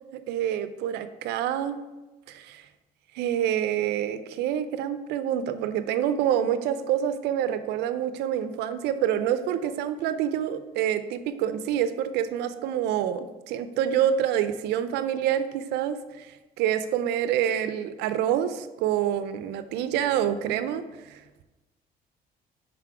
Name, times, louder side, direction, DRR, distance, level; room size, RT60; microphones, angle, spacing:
voice 1, 0.1-1.8 2.3-2.6 3.1-21.2, right 10 dB, 85° right, 12 dB, 0.5 m, -27 dB
5.9 x 5.0 x 4.7 m, 1.1 s
cardioid pair, 110°, 17 cm